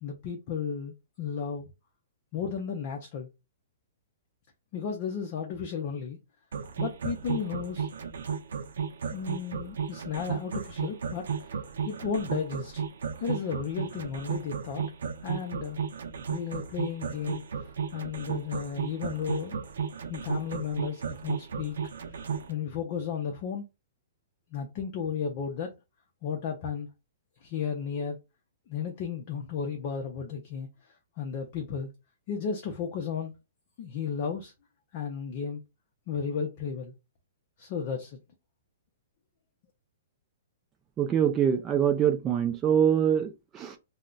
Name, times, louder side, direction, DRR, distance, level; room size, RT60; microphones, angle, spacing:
voice 1, 0.0-1.7 2.3-3.3 4.7-6.2 6.8-7.9 9.1-11.3 11.8-12.8 13.2-14.8 15.2-15.8 16.3-19.6 20.1-21.8 22.5-23.7 24.5-25.7 26.2-26.9 27.4-28.2 28.7-30.7 31.2-31.9 32.3-33.3 33.8-34.5 34.9-35.6 36.1-36.9 37.6-38.2, left 7 dB, 35° left, 0.5 m, -34 dB
sound 1, 6.5-22.5, right 7 dB, 85° right, 0.5 m, -33 dB
voice 2, 41.0-43.8, right 9 dB, 15° right, 0.3 m, -24 dB
2.3 x 2.1 x 3.8 m
hypercardioid pair, 165°, 0 cm